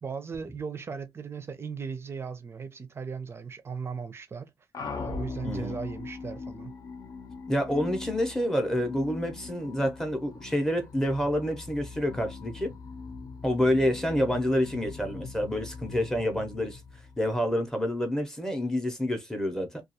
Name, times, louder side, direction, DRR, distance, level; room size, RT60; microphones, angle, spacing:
voice 1, 0.0-4.5 5.0-6.8, right 5 dB, 30° right, 0.5 m, -37 dB
sound 1, 4.7-17.6, left 4 dB, 50° left, 0.6 m, -40 dB
voice 2, 5.4-5.8 7.5-12.7 13.4-16.8 17.2-19.8, equal, 5° left, 0.7 m, -28 dB
2.3 x 2.3 x 2.7 m
wide cardioid pair, 150°, 8 cm